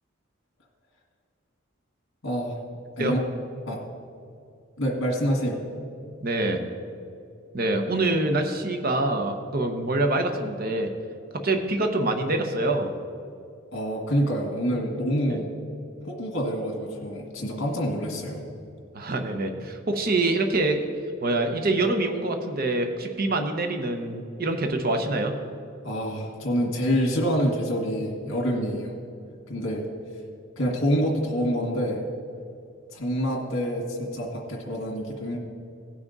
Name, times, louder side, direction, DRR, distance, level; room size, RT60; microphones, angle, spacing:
voice 1, 2.2-2.6 3.0-3.2 3.7-3.8 4.8-5.6 13.7-15.5 16.0-18.5 25.8-29.0 29.5-29.9 30.6-32.1 32.9-35.4, equal, 60° left, -1 dB, 1.8 m, -27 dB
voice 2, 6.2-6.6 7.5-10.9 11.3-12.9 15.3-15.4 18.9-20.9 21.2-25.3, right 2 dB, 45° right, 5 dB, 0.8 m, -25 dB
16.5 x 6.0 x 4.0 m, 2.5 s
head